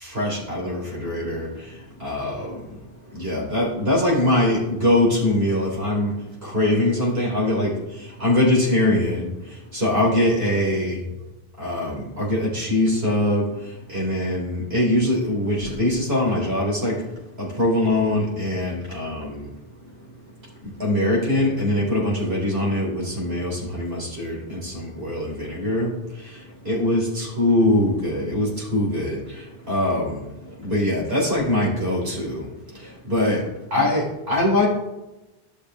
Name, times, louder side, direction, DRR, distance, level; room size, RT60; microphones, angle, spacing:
voice 1, 0.0-2.7 3.1-6.2 6.4-11.1 11.6-17.1 17.4-19.5 20.6-34.7, left 1 dB, 80° right, -4 dB, 3.8 m, -23 dB
15.5 x 6.5 x 2.3 m, 1.0 s
omnidirectional pair, 1.0 m